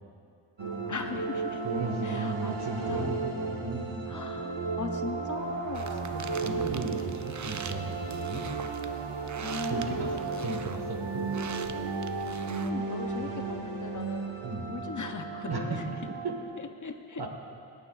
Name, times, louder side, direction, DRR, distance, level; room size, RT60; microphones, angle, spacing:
sound 1, 0.6-16.4, right 4 dB, 80° right, 1.6 m, -34 dB
voice 1, 0.9-1.6 2.0-3.1 4.1-6.2 9.4-10.5 12.6-14.3 14.7-15.9 16.6-17.3, left 4 dB, 45° left, 6 dB, 0.7 m, -39 dB
voice 2, 1.6-3.3 3.6-4.0 6.1-8.5 9.6-10.1 10.4-11.3 14.4-14.7 15.5-16.0 16.2-16.3 17.2-17.3, right 3 dB, 60° right, 2 dB, 1.6 m, -35 dB
sound 2, 5.7-12.7, right 6 dB, 40° right, 0.6 m, -44 dB
26.5 x 9.1 x 2.5 m, 2.4 s
wide cardioid pair, 90°, 44 cm